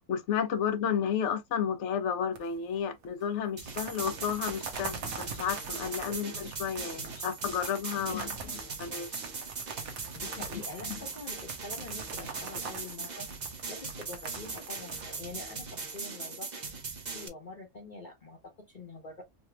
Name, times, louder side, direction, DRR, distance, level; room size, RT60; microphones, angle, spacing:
voice 1, 0.1-9.2 10.5-10.6 10.9-11.0, left 8 dB, 60° left, 1.0 m, -32 dB
sound 1, 2.4-2.8 3.0-3.1 3.5-16.0, right 5 dB, 75° right, 1.3 m, -44 dB
sound 2, 3.6-17.3, right 4 dB, 40° right, 0.8 m, -40 dB
voice 2, 7.9-8.3 10.1-13.3 13.7-16.5 17.1-19.2, left 3 dB, 35° left, 1.1 m, -45 dB
4.1 x 3.0 x 2.3 m
omnidirectional pair, 1.5 m